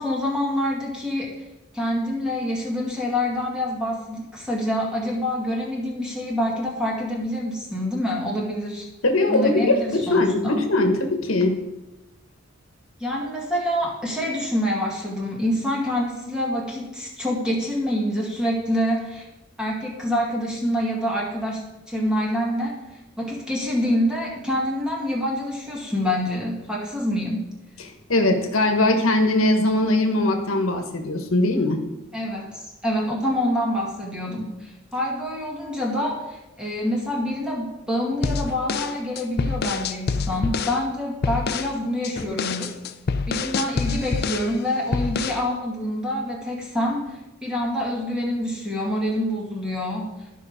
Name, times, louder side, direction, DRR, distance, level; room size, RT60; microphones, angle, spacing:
voice 1, 0.0-1.3 1.7-8.9 9.3-10.6 13.0-19.3 19.6-21.6 21.9-22.8 23.2-27.4 32.1-42.8 43.3-50.1, left 1 dB, 5° right, -3 dB, 2.0 m, -26 dB
voice 2, 9.0-11.6 27.8-31.9, left 2 dB, 80° left, 5 dB, 1.2 m, -21 dB
sound 1, 38.2-40.8 41.2-41.7 42.0-44.5 44.9-45.4, left 4 dB, 50° left, 0.5 m, -26 dB
12.5 x 5.4 x 5.0 m, 0.99 s
head